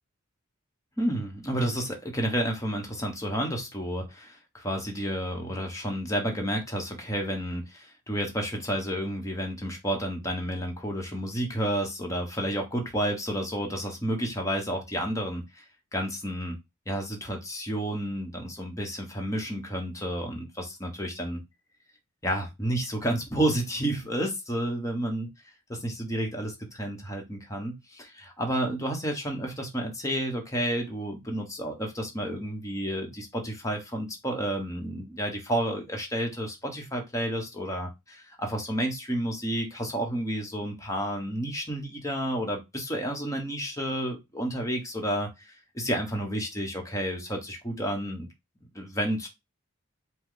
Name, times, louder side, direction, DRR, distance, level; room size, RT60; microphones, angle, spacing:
voice 1, 1.0-15.6 15.9-16.6 16.9-21.4 22.2-25.3 25.7-37.9 38.4-48.3 48.7-49.3, equal, 15° left, 1.1 m, -31 dB
5.2 x 2.3 x 3.8 m
head